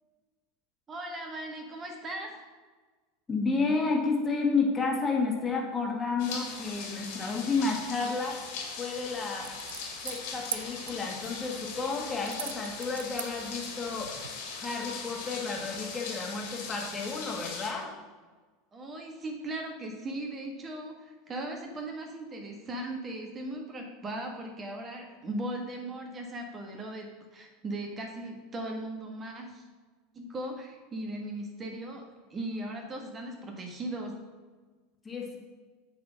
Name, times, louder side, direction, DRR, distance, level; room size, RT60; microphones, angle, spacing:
voice 1, 0.9-2.3 18.7-29.6 30.1-32.0 32.3-34.1, right 1 dB, 30° right, 2 dB, 1.5 m, -38 dB
voice 2, 3.3-8.4 8.8-9.5 10.0-14.1 14.5-17.9 35.0-35.4, left 4 dB, 20° left, 0 dB, 1.9 m, -31 dB
sound 1, 6.2-17.7, left 4 dB, 65° left, 2.3 m, -40 dB
sound 2, 9.4-14.3, right 7 dB, 85° right, 0.3 m, -43 dB
8.3 x 4.2 x 6.3 m, 1.4 s
hypercardioid pair, 85°, 0 cm